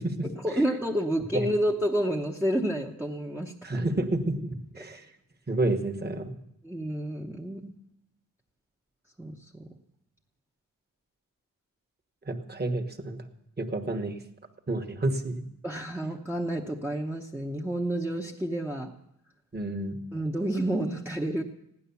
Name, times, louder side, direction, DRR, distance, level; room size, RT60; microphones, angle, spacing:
voice 1, 0.2-3.5 6.6-7.7 9.2-9.7 15.6-18.9 20.1-21.4, right 1 dB, 5° right, -1 dB, 0.9 m, -29 dB
voice 2, 3.6-5.1 5.5-6.3 12.2-13.2 13.6-14.2 14.7-15.4 19.5-20.0, right 2 dB, 30° right, 4 dB, 1.4 m, -29 dB
16.5 x 11.0 x 7.0 m, 0.81 s
wide cardioid pair, 150°, 34 cm